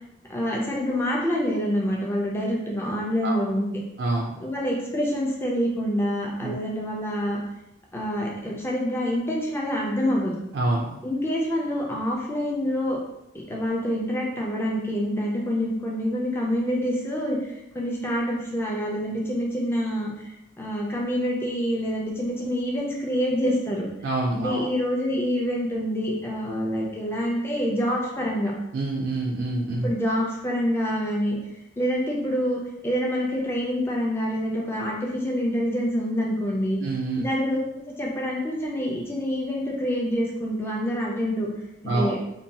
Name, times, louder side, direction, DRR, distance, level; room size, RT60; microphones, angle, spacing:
voice 1, 0.3-3.7 4.4-7.4 7.9-10.3 11.0-13.0 13.5-23.9 24.3-28.5 29.8-31.4 31.8-36.8 37.2-41.5 41.8-42.2, equal, 10° left, -3 dB, 0.4 m, -26 dB
voice 2, 4.0-4.3 6.4-6.5 10.5-11.0 24.0-24.6 28.7-29.9 36.8-37.3 41.8-42.1, right 2 dB, 75° right, -1 dB, 0.3 m, -26 dB
2.6 x 2.2 x 2.8 m, 0.86 s
head